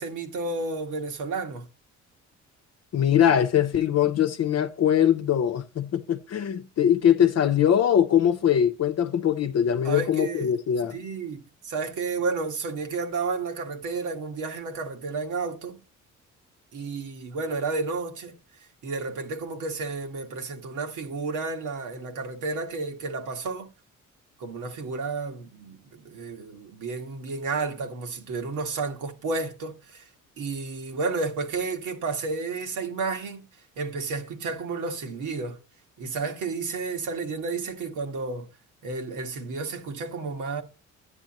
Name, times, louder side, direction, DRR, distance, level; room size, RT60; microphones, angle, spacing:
voice 1, 0.0-1.6 9.8-10.5 10.9-15.8 16.7-18.4 18.8-23.7 24.4-30.0 30.4-33.5 33.8-35.6 36.0-38.5 38.8-40.6, right 4 dB, 80° right, 1.8 m, -31 dB
voice 2, 2.9-11.0, left 9 dB, 55° left, 0.8 m, -22 dB
10.5 x 9.7 x 3.0 m
cardioid pair, 90°, 30 cm